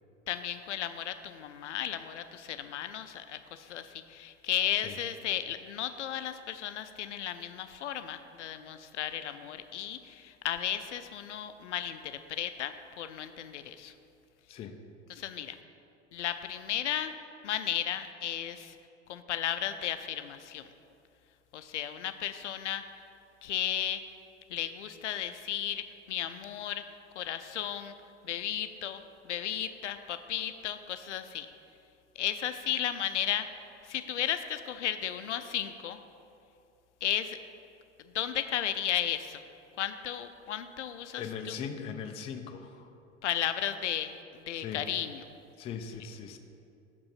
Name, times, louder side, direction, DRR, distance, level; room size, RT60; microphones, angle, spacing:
voice 1, 0.3-13.9 15.1-15.6 16.1-17.1 17.4-18.7 19.1-20.6 21.5-22.8 23.4-24.0 24.5-26.8 27.2-27.9 28.2-31.5 32.2-33.5 33.8-36.0 37.0-37.4 38.1-39.4 39.8-41.6 43.2-45.2, left 11 dB, 70° left, 10 dB, 0.5 m, -34 dB
voice 2, 41.2-42.9 44.5-44.8 45.6-46.4, left 7 dB, 20° left, 6 dB, 0.3 m, -39 dB
6.1 x 5.1 x 5.6 m, 2.6 s
figure-of-eight pair, 75°, 36 cm